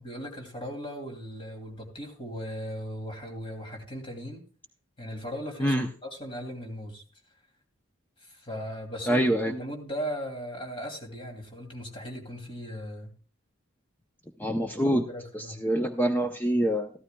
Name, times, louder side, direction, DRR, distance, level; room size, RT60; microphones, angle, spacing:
voice 1, 0.0-4.4 5.0-7.0 8.2-13.1 15.1-15.6, equal, 25° left, 3 dB, 2.7 m, -38 dB
voice 2, 9.1-9.5 14.4-15.1 15.3-16.9, equal, 10° left, 5 dB, 0.6 m, -25 dB
14.0 x 13.0 x 2.2 m, 0.37 s
head